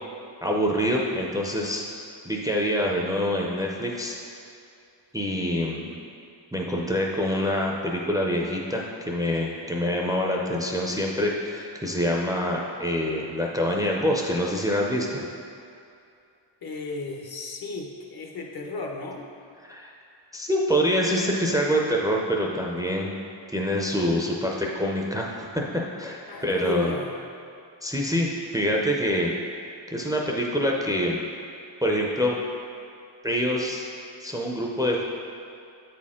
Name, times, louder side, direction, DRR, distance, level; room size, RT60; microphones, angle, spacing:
voice 1, 0.4-1.9 2.3-4.2 5.1-6.0 6.5-15.3 19.6-19.9 20.3-23.2 23.5-26.9 27.8-29.3 29.9-31.2 31.8-32.4 33.2-33.9 34.2-35.0, equal, 10° right, -1 dB, 0.5 m, -26 dB
voice 2, 16.6-19.3 26.3-27.1, left 3 dB, 50° left, 1 dB, 0.8 m, -34 dB
8.0 x 4.3 x 3.7 m, 2.5 s
wide cardioid pair, 100°, 47 cm